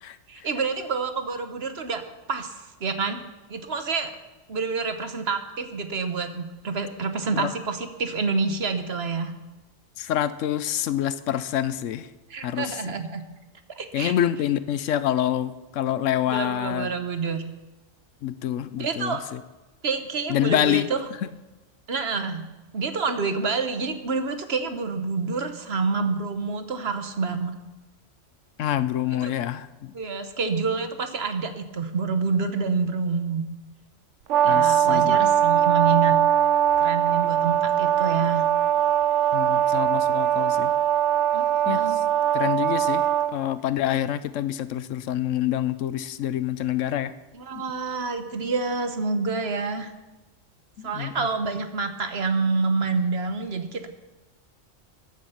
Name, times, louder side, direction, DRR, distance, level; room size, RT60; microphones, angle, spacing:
voice 1, 0.3-2.0 2.3-4.1 4.5-9.3 12.3-13.2 13.8-14.1 16.2-17.4 18.8-19.2 19.8-21.0 21.9-22.4 22.7-27.5 29.2-29.3 29.9-33.4 34.4-36.2 36.8-38.5 41.3-42.0 47.3-49.9 50.8-53.9, right 4 dB, 55° right, 8 dB, 1.3 m, -28 dB
voice 2, 10.0-12.1 12.4-12.8 13.9-16.9 18.2-19.2 20.3-20.9 28.6-29.9 34.4-35.2 39.3-40.7 41.7-42.0 42.3-43.0 43.3-47.1 50.8-51.3, left 11 dB, 80° left, 14 dB, 1.0 m, -26 dB
Brass instrument, 34.3-43.3, right 10 dB, 70° right, 1.0 m, -21 dB
14.5 x 10.5 x 5.7 m, 1.1 s
omnidirectional pair, 1.3 m